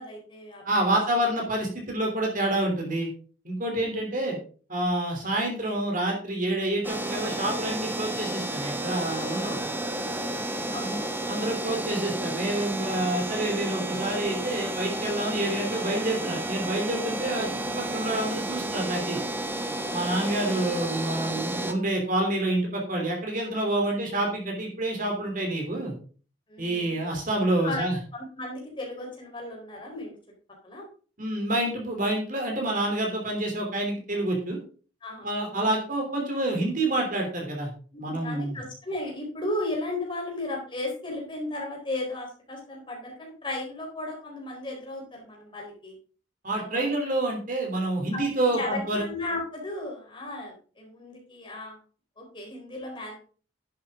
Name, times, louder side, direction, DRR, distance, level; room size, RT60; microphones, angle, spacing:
voice 1, 0.0-0.8 10.7-11.0 26.5-26.9 27.6-27.8 28.1-30.1 30.6-30.9 35.0-35.7 37.9-45.9 46.7-46.8 48.1-48.2 48.5-51.8 52.2-53.2, left 2 dB, 25° left, -1 dB, 4.1 m, -35 dB
voice 2, 0.6-3.1 3.4-4.4 4.7-9.6 10.8-19.2 19.9-25.9 26.6-28.0 31.2-34.6 35.2-37.7 38.0-38.6 46.4-49.0, right 1 dB, 40° right, 1 dB, 3.1 m, -28 dB
sound 1, 6.8-21.7, right 1 dB, 10° right, 0.8 m, -32 dB
11.0 x 8.2 x 3.7 m, 0.40 s
head